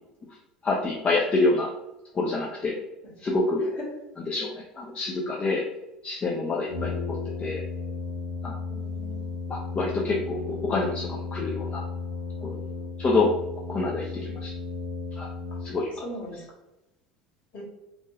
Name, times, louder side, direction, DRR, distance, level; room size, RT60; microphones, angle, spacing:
voice 1, 0.6-1.7 2.1-2.8 3.2-3.7 4.2-5.6 6.0-7.6 8.4-8.6 9.5-11.8 12.4-12.6 13.0-13.3 13.7-14.5 15.1-15.3 15.6-15.9, left 3 dB, 30° left, -2 dB, 0.4 m, -27 dB
Brass instrument, 6.7-16.2, left 4 dB, 90° left, 0.7 m, -34 dB
voice 2, 8.7-9.2 13.1-13.2 15.5-15.6 16.0-16.4 17.5-17.6, left 1 dB, 45° left, -4 dB, 1.3 m, -40 dB
2.6 x 2.2 x 3.0 m, 0.96 s
figure-of-eight pair, 70°, 4 cm